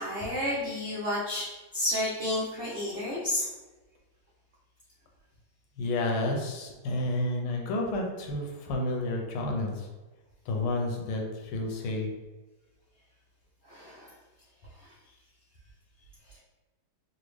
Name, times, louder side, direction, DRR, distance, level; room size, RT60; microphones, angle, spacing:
voice 1, 0.0-3.5 13.7-14.1 14.8-14.9, left 1 dB, 70° right, -7 dB, 0.6 m, -31 dB
voice 2, 5.8-9.9 10.5-12.1, left 2 dB, 85° left, 1 dB, 1.5 m, -30 dB
4.0 x 2.3 x 3.1 m, 1.2 s
omnidirectional pair, 2.3 m